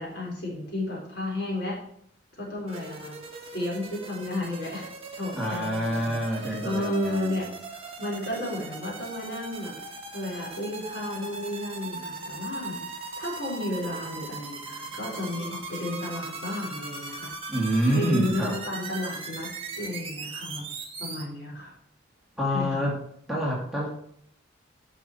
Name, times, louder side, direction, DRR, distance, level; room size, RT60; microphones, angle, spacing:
voice 1, 0.0-1.8 2.4-3.2 3.5-4.9 5.1-6.2 6.4-9.8 10.1-17.3 17.9-19.5 19.8-20.7 21.0-21.7 22.5-22.9, left 1 dB, 55° left, -3 dB, 3.9 m, -33 dB
sound 1, 2.7-21.2, right 3 dB, 30° right, 1.5 m, -39 dB
voice 2, 5.3-7.4 17.5-18.5 22.4-23.0 23.3-23.9, equal, ahead, -5 dB, 2.3 m, -27 dB
9.8 x 6.3 x 4.4 m, 0.69 s
head